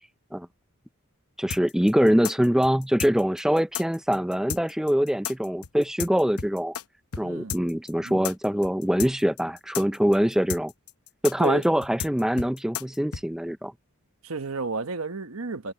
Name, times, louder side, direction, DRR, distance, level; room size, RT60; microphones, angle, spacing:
voice 1, 1.4-6.8 7.2-10.7 11.2-13.7, equal, ahead, 0.4 m, -23 dB
sound 1, 1.5-6.8 7.1-7.2 7.5-13.2, left 8 dB, 85° left, 0.8 m, -33 dB
voice 2, 7.2-7.6 8.0-8.2 11.4-11.6 14.2-15.7, right 4 dB, 75° right, 1.3 m, -32 dB
head